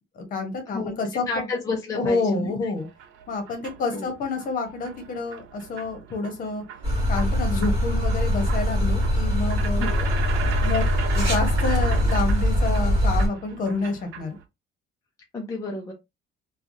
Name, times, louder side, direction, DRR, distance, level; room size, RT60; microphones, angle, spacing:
voice 1, 0.2-1.5 1.9-2.9 3.3-6.6 7.1-9.9 10.6-10.8 11.1-14.4, left 3 dB, 45° left, 1.0 m, -28 dB
voice 2, 0.7-2.7 3.9-4.1 9.8-10.1 15.3-15.9, left 2 dB, 15° left, 0.5 m, -31 dB
sound 1, 2.8-14.4, right 8 dB, 80° right, 0.7 m, -38 dB
sound 2, 6.8-13.3, left 1 dB, 30° right, 1.4 m, -22 dB
3.1 x 2.3 x 2.6 m
cardioid pair, 165°, 20 cm